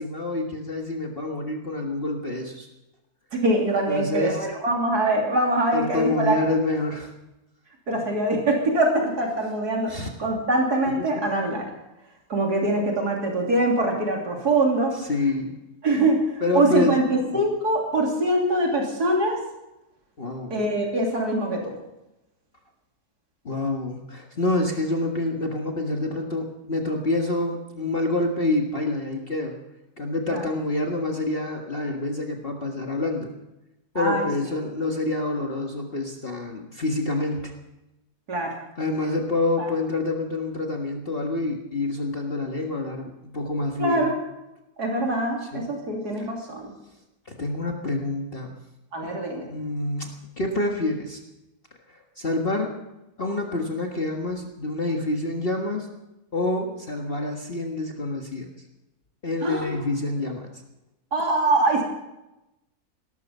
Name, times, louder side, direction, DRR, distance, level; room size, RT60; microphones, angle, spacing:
voice 1, 0.0-2.7 3.9-4.5 5.7-7.1 9.9-10.1 15.0-15.5 16.4-17.0 20.2-20.7 23.5-29.6 30.0-33.3 34.0-37.5 38.8-44.1 45.5-45.7 46.2-46.3 47.3-48.5 49.0-49.1 49.5-51.2 52.2-52.7 53.2-55.9 56.3-58.5 59.2-60.5, left 2 dB, 35° left, 1 dB, 1.7 m, -27 dB
voice 2, 3.3-6.4 7.9-11.7 12.3-14.9 15.8-16.2 16.5-19.4 20.5-21.6 30.3-30.5 34.0-34.3 38.3-38.5 39.6-39.7 43.8-44.2 44.8-46.7 48.9-49.5 59.4-59.8 61.1-61.8, right 2 dB, 85° right, 0 dB, 3.6 m, -23 dB
18.0 x 13.0 x 5.5 m, 0.94 s
omnidirectional pair, 1.6 m